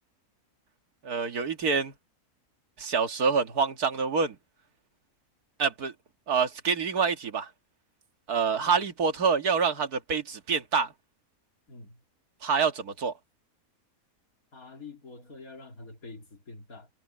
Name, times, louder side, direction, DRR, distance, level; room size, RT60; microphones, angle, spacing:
voice 1, 1.0-1.9 2.8-4.4 5.6-5.9 6.3-7.5 8.3-10.9 12.4-13.1, right 5 dB, 80° right, 2.2 m, -26 dB
voice 2, 11.7-12.0 14.5-16.9, left 3 dB, 70° left, 3.4 m, -46 dB
omnidirectional pair, 1.6 m